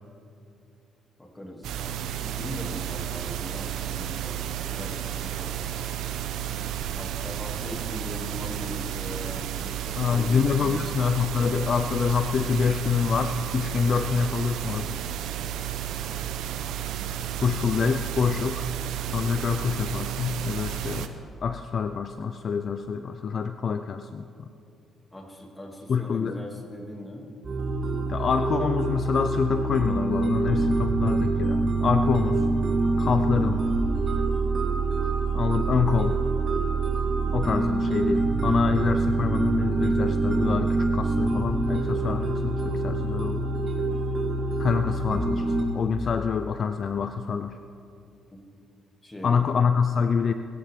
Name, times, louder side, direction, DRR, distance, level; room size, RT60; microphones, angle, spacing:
voice 1, 1.2-4.4 4.7-5.9 7.0-10.9 25.1-27.3 37.2-37.4 48.3-48.4 49.0-49.6, left 1 dB, 15° left, 0 dB, 2.7 m, -40 dB
sound 1, 1.6-21.1, right 11 dB, 85° right, 0.9 m, -32 dB
voice 2, 10.0-14.8 17.4-18.7 19.1-21.1 21.4-24.2 25.9-26.4 28.1-32.4 33.0-33.6 35.3-36.2 37.3-43.4 44.6-47.6 49.2-50.3, left 6 dB, 50° left, 9 dB, 0.5 m, -26 dB
sound 2, 27.4-45.6, right 3 dB, 45° right, 3.7 m, -25 dB
22.5 x 13.0 x 3.7 m, 2.7 s
cardioid pair, 90°, 0 cm